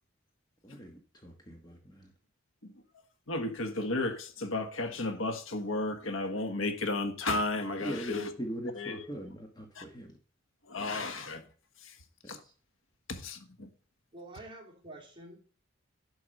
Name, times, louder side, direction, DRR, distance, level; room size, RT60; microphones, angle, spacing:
voice 1, 0.6-2.1 7.8-10.2 12.2-12.5, right 1 dB, 20° left, 1.2 m, -41 dB
voice 2, 3.3-8.3 8.8-9.1 9.8-9.9 10.7-11.4 11.8-11.9 12.3-12.4 13.1-13.7, left 2 dB, 75° left, 1.3 m, -33 dB
voice 3, 14.1-15.4, right 2 dB, 25° right, 3.0 m, -48 dB
11.0 x 4.7 x 6.4 m
head